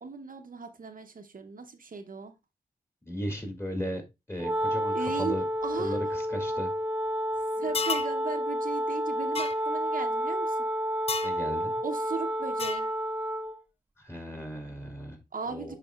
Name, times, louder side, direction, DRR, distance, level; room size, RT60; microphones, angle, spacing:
voice 1, 0.0-2.3 4.9-5.3 5.6-6.0 7.6-10.6 11.8-12.9 15.3-15.7, right 5 dB, 60° right, 5 dB, 0.8 m, -37 dB
voice 2, 3.0-4.0 4.3-5.4 5.8-6.7 11.2-11.7 14.0-15.2 15.5-15.8, equal, 15° left, 3 dB, 2.3 m, -36 dB
Wind instrument woodwind instrument, 4.4-13.6, equal, 10° right, 0.8 m, -30 dB
sound 1, 7.7-8.1 9.3-9.5 11.1-11.4 12.6-12.9, left 4 dB, 40° left, 0.4 m, -31 dB
10.5 x 4.1 x 2.3 m, 0.23 s
wide cardioid pair, 85°, 16 cm